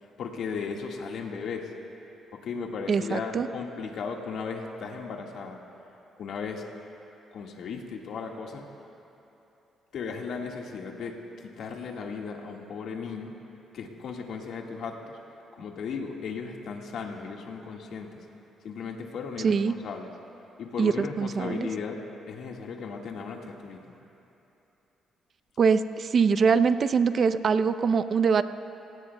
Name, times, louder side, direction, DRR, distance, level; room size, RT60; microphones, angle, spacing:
voice 1, 0.0-1.7 2.3-5.6 6.2-6.6 7.3-8.7 9.9-13.3 13.7-15.2 15.6-18.3 18.6-20.1 20.6-22.0 22.3-23.8, left 5 dB, 70° left, 1 dB, 1.7 m, -36 dB
voice 2, 2.9-3.5 19.4-19.8 20.8-21.7 25.6-28.4, right 5 dB, 50° right, 12 dB, 0.6 m, -23 dB
28.5 x 17.5 x 2.3 m, 3.0 s
cardioid pair, 90°, 0 cm